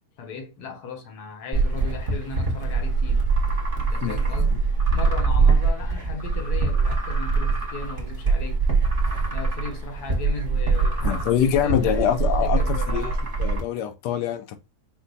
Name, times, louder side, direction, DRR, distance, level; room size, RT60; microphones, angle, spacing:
voice 1, 0.2-3.3 3.8-4.5 4.9-8.6 9.3-13.2, left 4 dB, 70° left, 1.4 m, -37 dB
sound 1, 1.5-13.6, right 4 dB, 35° right, 1.2 m, -23 dB
voice 2, 4.0-4.6 9.2-9.3 11.0-13.1 13.4-14.6, left 9 dB, 85° left, 1.2 m, -25 dB
4.6 x 2.3 x 3.9 m
omnidirectional pair, 1.8 m